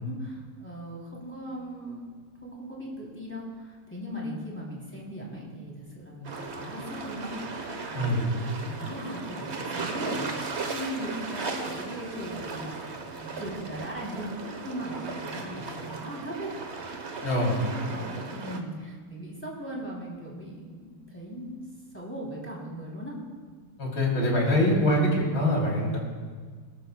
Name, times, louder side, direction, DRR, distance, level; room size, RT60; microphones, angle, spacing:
voice 1, 0.0-2.1 2.4-16.5 17.2-21.6 21.9-23.2, equal, 5° left, -5 dB, 2.8 m, -38 dB
sound 1, 6.2-18.6, right 4 dB, 45° right, 0.9 m, -36 dB
voice 2, 7.9-8.2 17.2-17.5 23.8-26.0, left 1 dB, 55° left, -3 dB, 3.6 m, -24 dB
23.5 x 12.5 x 2.2 m, 1.5 s
omnidirectional pair, 2.4 m